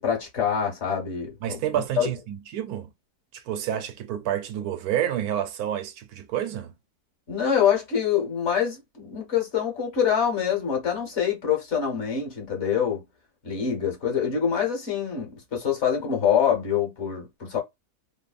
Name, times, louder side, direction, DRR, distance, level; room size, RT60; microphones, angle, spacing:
voice 1, 0.0-2.1 7.3-13.0 13.4-17.6, left 8 dB, 50° left, 1.4 m, -25 dB
voice 2, 1.4-2.9 3.3-6.7, right 11 dB, 80° right, 1.1 m, -29 dB
3.2 x 2.1 x 2.3 m
omnidirectional pair, 1.6 m